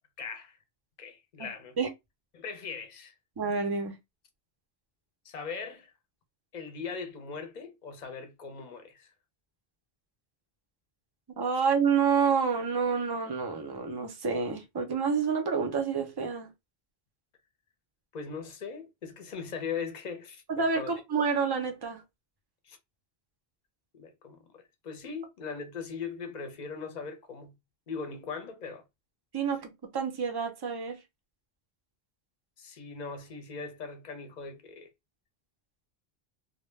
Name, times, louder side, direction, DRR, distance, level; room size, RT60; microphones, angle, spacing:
voice 1, 0.2-0.6 1.0-1.8 2.3-3.2 5.2-5.9 6.5-9.1 18.1-20.9 22.6-22.8 23.9-27.6 27.9-28.8 32.6-34.9, left 5 dB, 50° left, 0.7 m, -40 dB
voice 2, 3.4-4.0 11.4-16.5 20.5-22.0 29.3-31.0, right 5 dB, 35° right, 0.4 m, -28 dB
2.1 x 2.1 x 3.1 m
omnidirectional pair, 1.1 m